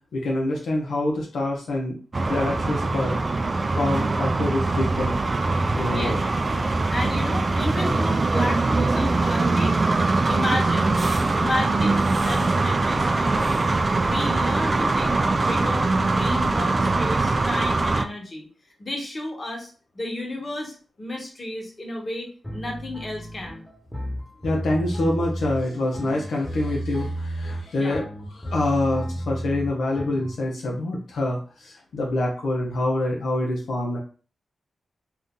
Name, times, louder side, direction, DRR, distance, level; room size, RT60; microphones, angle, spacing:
voice 1, 0.1-2.0 2.3-3.2 3.8-5.2 5.8-6.3 6.5-6.8 24.4-34.0, left 1 dB, 80° left, -1 dB, 0.6 m, -26 dB
sound 1, 2.1-18.0, right 3 dB, 40° right, 0.3 m, -22 dB
voice 2, 6.9-9.8 10.3-11.0 11.3-13.7 14.0-18.5 18.8-19.7 19.9-23.6 27.7-28.0, left 1 dB, 40° left, 0 dB, 1.1 m, -32 dB
sound 2, 22.4-30.3, right 1 dB, 10° left, 1.2 m, -32 dB
2.6 x 2.4 x 3.7 m, 0.38 s
cardioid pair, 60°, 0 cm